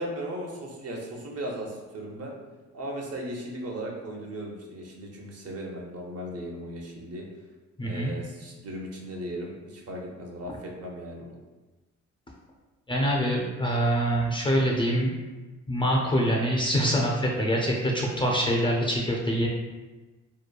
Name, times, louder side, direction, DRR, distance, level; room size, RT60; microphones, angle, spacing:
voice 1, 0.0-2.3 2.7-7.3 7.8-11.4, right 1 dB, 55° right, -1 dB, 0.7 m, -37 dB
voice 2, 7.8-8.1 12.9-15.1 15.7-19.5, equal, 15° left, -2 dB, 0.3 m, -25 dB
2.9 x 2.2 x 2.2 m, 1.2 s
cardioid pair, 90°, 30 cm